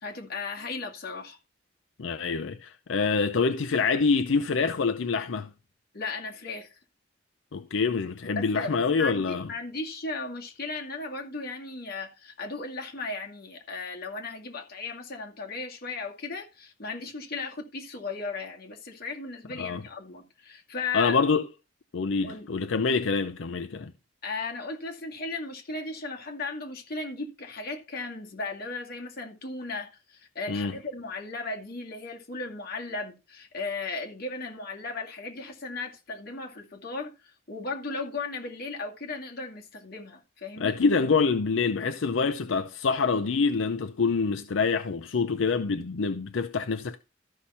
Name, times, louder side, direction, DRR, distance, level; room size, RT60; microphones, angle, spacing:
voice 1, 0.0-1.4 5.9-6.8 8.4-21.2 22.2-22.5 24.2-40.8, left 3 dB, 55° left, 2.3 m, -36 dB
voice 2, 2.0-5.5 7.5-9.5 19.6-19.8 20.9-21.4 21.9-23.9 30.5-30.7 40.6-47.0, left 4 dB, 85° left, 0.6 m, -26 dB
13.5 x 5.7 x 4.3 m
head